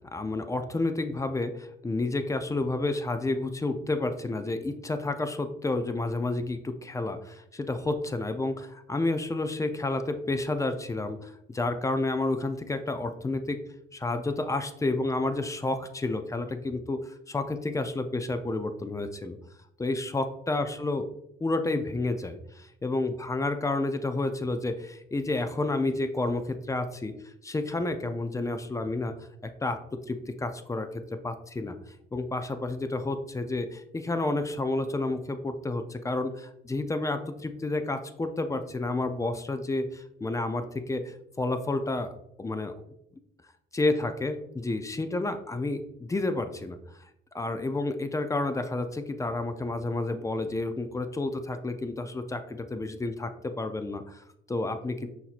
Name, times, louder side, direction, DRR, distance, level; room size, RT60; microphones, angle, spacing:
voice 1, 0.1-13.6 13.9-19.4 19.8-21.1 21.4-27.1 27.4-29.1 29.4-29.8 30.1-30.9 31.2-31.8 32.1-42.1 42.4-42.7 43.7-46.8 47.3-55.1, left 2 dB, 15° left, 8 dB, 0.4 m, -30 dB
5.8 x 2.8 x 2.4 m, 0.79 s
cardioid pair, 90°, 20 cm